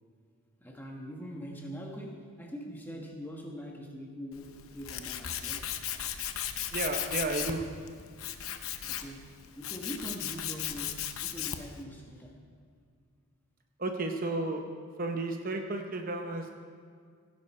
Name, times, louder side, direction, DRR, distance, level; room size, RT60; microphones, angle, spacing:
voice 1, 0.6-5.8 8.9-12.4, equal, 10° left, 0 dB, 1.3 m, -43 dB
Tools, 4.3-11.8, left 10 dB, 80° left, 0.8 m, -36 dB
voice 2, 6.7-7.6 13.8-14.6 15.0-16.5, right 2 dB, 40° right, 4 dB, 0.8 m, -32 dB
16.5 x 10.5 x 4.3 m, 2.1 s
head